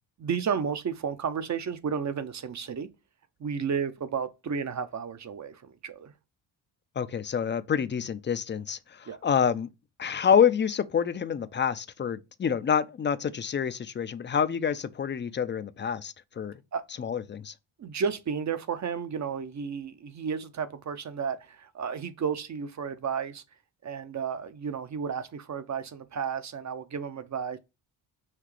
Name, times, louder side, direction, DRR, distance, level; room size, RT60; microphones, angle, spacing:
voice 1, 0.2-2.9 3.4-6.1 9.1-9.2 16.7-16.8 17.8-23.4 23.8-27.6, right 6 dB, 35° right, 0.6 m, -32 dB
voice 2, 7.0-9.7 10.0-16.6 17.0-17.5, left 7 dB, 25° left, 0.4 m, -27 dB
5.9 x 2.8 x 3.2 m
cardioid pair, 75°, 47 cm